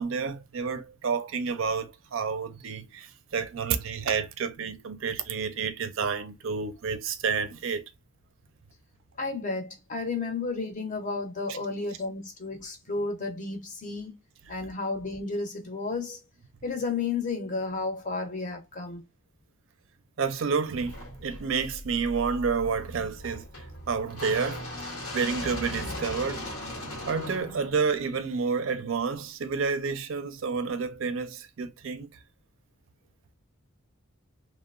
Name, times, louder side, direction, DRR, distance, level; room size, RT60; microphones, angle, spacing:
voice 1, 0.0-7.8 20.2-23.5 23.9-24.6 25.1-26.4 27.1-32.1, right 5 dB, 60° right, 0.4 m, -29 dB
voice 2, 9.2-14.2 14.5-16.2 16.6-19.0, left 3 dB, 35° left, 0.6 m, -32 dB
sound 1, 20.8-28.8, left 1 dB, 85° left, 1.0 m, -38 dB
2.8 x 2.1 x 2.4 m
head